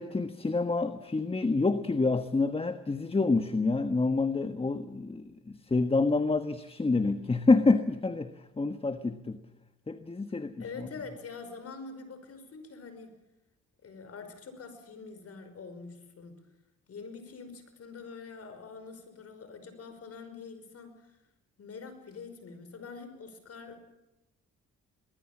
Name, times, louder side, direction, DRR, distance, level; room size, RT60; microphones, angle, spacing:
voice 1, 0.0-9.4 9.9-10.9, left 3 dB, 20° left, 10 dB, 1.3 m, -27 dB
voice 2, 10.6-13.2 13.8-16.4 16.9-21.2 21.6-23.9, left 4 dB, 50° left, 9 dB, 5.3 m, -45 dB
24.0 x 20.0 x 7.4 m, 0.98 s
cardioid pair, 90°, 30 cm